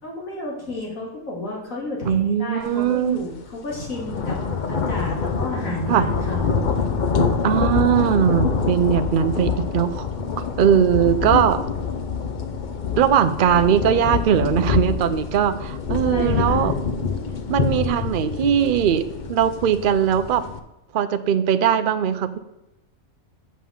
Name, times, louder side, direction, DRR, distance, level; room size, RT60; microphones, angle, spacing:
voice 1, 0.0-4.4 4.7-6.7 16.0-16.7, left 2 dB, 75° left, -2 dB, 3.0 m, -32 dB
voice 2, 2.1-3.2 5.9-6.1 7.4-10.0 10.4-11.6 13.0-16.7 17.5-20.4 20.9-22.4, right 9 dB, 50° right, 11 dB, 0.6 m, -20 dB
sound 1, 2.8-3.0 3.3-20.6, left 5 dB, 45° left, 0.7 m, -25 dB
7.4 x 6.0 x 7.1 m, 0.92 s
omnidirectional pair, 1.4 m